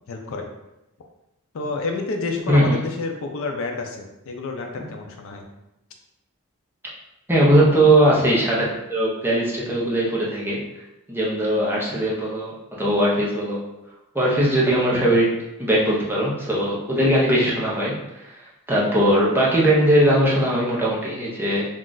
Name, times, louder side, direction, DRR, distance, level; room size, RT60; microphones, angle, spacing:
voice 1, 0.1-0.5 1.5-5.5, left 3 dB, 65° left, 3 dB, 0.4 m, -29 dB
voice 2, 7.3-10.6 11.1-13.6 14.1-15.3 15.6-21.6, right 1 dB, 10° right, -5 dB, 0.6 m, -20 dB
2.4 x 2.3 x 3.8 m, 0.92 s
head